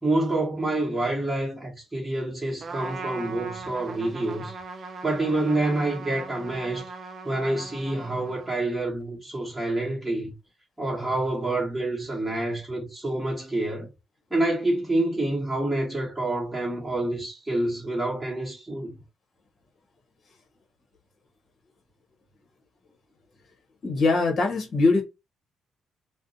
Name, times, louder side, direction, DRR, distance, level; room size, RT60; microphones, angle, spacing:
voice 1, 0.0-4.6 5.0-6.9 7.2-10.3 10.8-13.9 14.3-19.0, right 2 dB, 5° right, 1.1 m, -27 dB
Trumpet, 2.6-8.8, right 4 dB, 50° right, 0.4 m, -40 dB
voice 2, 23.8-25.0, left 3 dB, 55° left, 0.9 m, -22 dB
2.5 x 2.0 x 2.7 m
cardioid pair, 90°, 0 cm